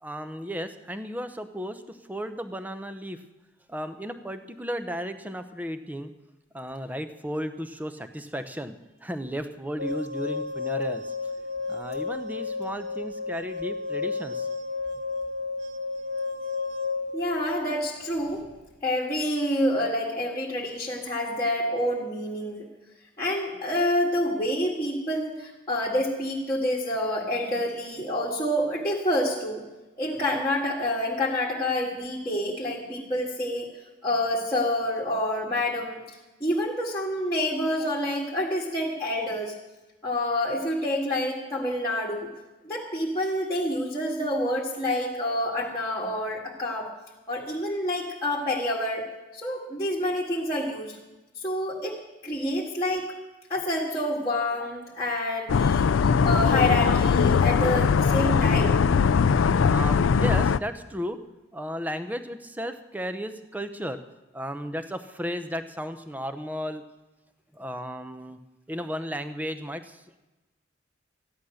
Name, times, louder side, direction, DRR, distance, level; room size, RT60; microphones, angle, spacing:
voice 1, 0.0-3.2 3.7-6.1 6.5-8.8 9.0-11.0 11.7-14.5 59.7-61.2 61.5-64.0 64.3-66.8 67.5-68.4 68.7-70.0, equal, 10° right, 9 dB, 0.7 m, -34 dB
sound 1, 9.8-18.5, left 4 dB, 70° right, 1.6 m, -32 dB
voice 2, 17.1-18.4 18.8-22.7 23.2-29.6 30.0-33.7 34.0-36.0 36.4-39.5 40.0-42.3 42.6-46.9 47.3-49.0 49.3-51.0 51.4-53.1 53.5-58.8, left 1 dB, 15° left, -7 dB, 1.8 m, -28 dB
sound 2, 55.5-60.6, left 6 dB, 75° left, 0.4 m, -21 dB
14.5 x 11.0 x 6.4 m, 1.1 s
head